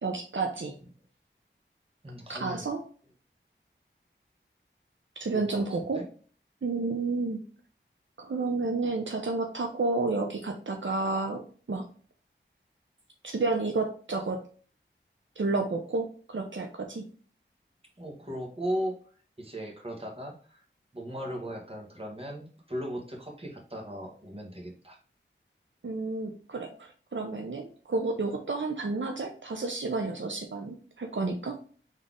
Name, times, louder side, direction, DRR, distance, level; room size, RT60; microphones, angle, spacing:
voice 1, 0.0-0.8 2.3-2.8 5.2-6.0 6.6-7.4 8.2-11.4 11.7-11.9 13.2-14.4 15.4-17.0 25.8-31.6, right 3 dB, 70° right, 2 dB, 0.7 m, -31 dB
voice 2, 2.0-2.7 5.3-6.1 18.0-19.0 19.4-20.6 20.9-25.0, equal, 30° right, 0 dB, 1.4 m, -37 dB
4.1 x 3.2 x 3.6 m, 0.42 s
wide cardioid pair, 55°, 21 cm